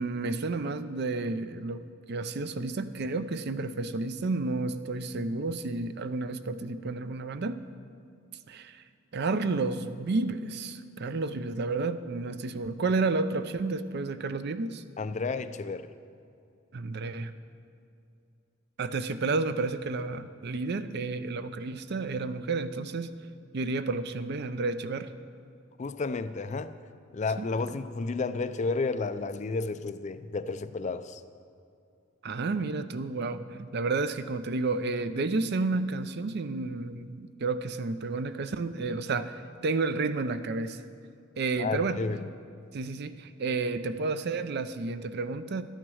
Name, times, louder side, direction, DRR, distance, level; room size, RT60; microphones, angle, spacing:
voice 1, 0.0-1.8 2.1-7.6 8.5-8.8 9.1-14.8 16.7-17.3 18.8-23.1 23.5-25.1 27.4-27.5 32.2-40.8 41.4-42.0 42.7-45.6, right 3 dB, 55° right, 11 dB, 0.5 m, -31 dB
voice 2, 15.0-15.9 25.8-26.8 27.1-31.2 41.6-42.2, left 3 dB, 35° left, 12 dB, 0.4 m, -32 dB
12.0 x 9.1 x 6.3 m, 2.5 s
head